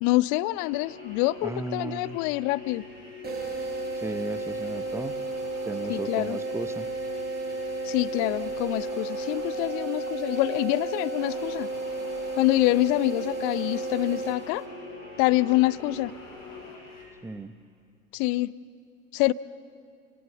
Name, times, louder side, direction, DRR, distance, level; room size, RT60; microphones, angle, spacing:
voice 1, 0.0-2.8 5.9-6.4 7.8-11.7 12.4-14.6 15.2-16.1 18.1-18.5 19.1-19.3, left 19 dB, 35° left, 20 dB, 0.5 m, -26 dB
sound 1, 0.6-17.1, left 3 dB, 65° left, 7.6 m, -43 dB
voice 2, 1.4-2.2 3.9-5.2 5.6-6.9 17.2-17.6, right 2 dB, 5° right, 14 dB, 0.7 m, -35 dB
sound 2, 3.2-14.9, right 3 dB, 25° right, 6.1 m, -33 dB
29.0 x 17.5 x 8.1 m, 2.4 s
figure-of-eight pair, 80°, 39 cm